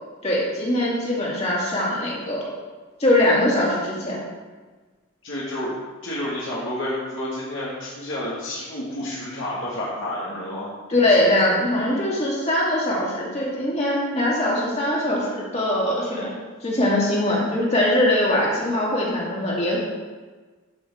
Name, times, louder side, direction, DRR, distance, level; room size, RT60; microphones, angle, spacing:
voice 1, 0.2-2.5 3.0-4.2 10.9-16.3 16.6-19.8, left 1 dB, 30° left, -5 dB, 2.4 m, -22 dB
voice 2, 5.2-5.8 6.0-10.7, left 1 dB, 60° left, -7 dB, 1.8 m, -30 dB
13.0 x 6.4 x 3.6 m, 1.4 s
head